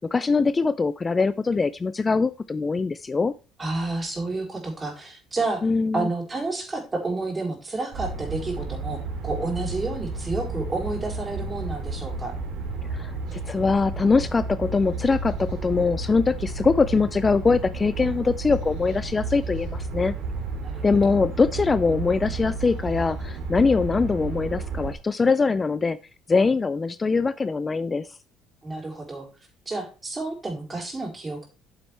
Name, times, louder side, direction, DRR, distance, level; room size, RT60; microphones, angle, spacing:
voice 1, 0.1-3.3 5.6-6.1 12.9-20.1 20.8-26.0 26.3-28.1, left 4 dB, 25° left, 15 dB, 0.4 m, -22 dB
voice 2, 3.6-5.7 5.9-12.3 20.6-21.3 28.6-29.3 29.7-31.5, right 3 dB, 25° right, 1 dB, 4.1 m, -30 dB
sound 1, 7.9-24.9, right 3 dB, 70° right, 3.1 m, -32 dB
8.8 x 7.2 x 3.4 m, 0.33 s
supercardioid pair, 90°, 0 cm